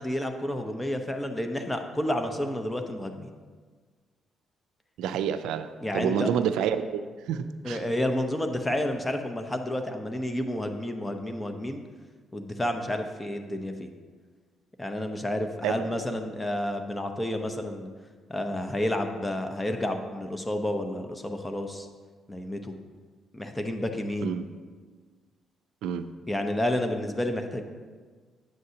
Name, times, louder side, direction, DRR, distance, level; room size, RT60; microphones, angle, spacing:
voice 1, 0.0-3.3 5.8-6.3 7.6-11.8 12.3-13.9 14.8-17.9 18.3-21.9 22.3-22.7 23.3-24.4 26.3-27.6, left 1 dB, 15° left, 6 dB, 0.8 m, -30 dB
voice 2, 5.0-7.8 15.6-15.8 24.2-24.5 25.8-26.1, right 8 dB, 90° right, 11 dB, 0.3 m, -28 dB
9.1 x 7.6 x 2.8 m, 1.5 s
cardioid pair, 90°, 0 cm